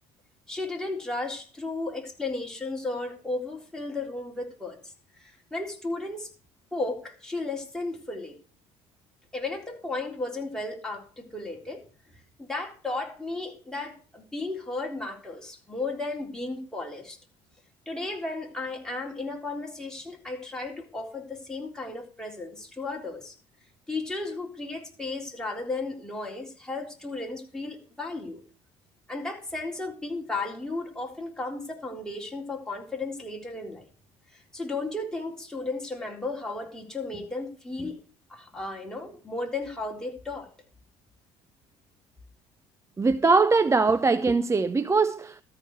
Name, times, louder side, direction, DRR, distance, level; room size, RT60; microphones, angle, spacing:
voice 1, 0.5-4.8 5.2-6.3 6.7-8.4 9.3-11.8 12.4-17.2 17.9-23.3 23.9-28.4 29.1-33.9 34.3-38.0 38.3-40.5, left 2 dB, 5° left, 3.7 m, -34 dB
voice 2, 43.0-45.4, right 4 dB, 20° right, 0.5 m, -22 dB
13.5 x 4.9 x 7.8 m
hypercardioid pair, 70°, 14 cm